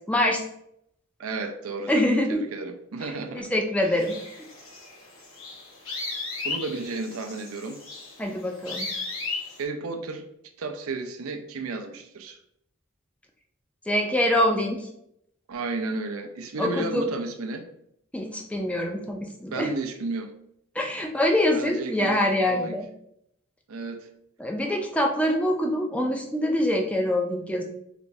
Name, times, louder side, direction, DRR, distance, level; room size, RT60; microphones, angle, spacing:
voice 1, 0.1-0.4 1.9-2.4 3.0-4.2 8.2-8.9 13.9-14.9 16.6-17.1 18.1-19.7 20.8-22.9 24.4-27.6, left 1 dB, 5° left, 0.4 m, -25 dB
voice 2, 1.2-3.5 3.8-4.0 6.4-7.8 9.6-10.2 10.6-12.4 15.5-17.7 19.5-20.3 21.5-22.8 23.7-24.1, right 3 dB, 85° right, 0.5 m, -33 dB
sound 1, 4.0-9.6, left 3 dB, 80° left, 1.1 m, -36 dB
3.5 x 2.9 x 2.6 m
head